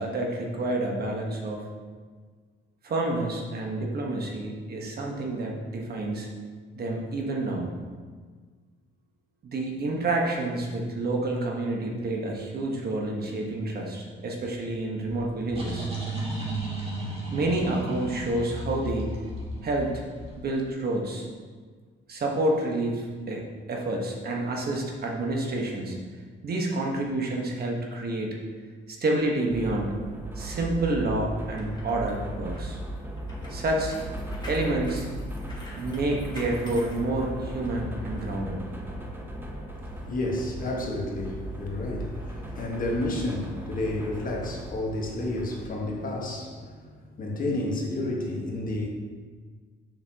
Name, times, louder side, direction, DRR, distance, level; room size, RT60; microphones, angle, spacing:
voice 1, 0.0-1.7 2.8-6.3 6.8-7.7 9.4-15.9 17.3-19.2 19.6-20.0 20.4-21.3 22.1-23.4 23.7-26.0 26.4-28.3 28.9-29.9 30.4-32.8 33.5-34.0 34.5-35.1 35.7-38.6, right 2 dB, 50° right, 0 dB, 1.2 m, -29 dB
sound 1, 15.0-20.6, right 2 dB, 30° right, 2.0 m, -34 dB
sound 2, 29.5-45.7, right 1 dB, 10° right, 0.8 m, -37 dB
sound 3, 31.4-37.7 38.1-38.3, left 1 dB, 20° left, 1.7 m, -47 dB
voice 2, 39.8-48.9, left 1 dB, 45° left, -1 dB, 1.4 m, -31 dB
6.9 x 5.8 x 2.9 m, 1.5 s
cardioid pair, 90°, 20 cm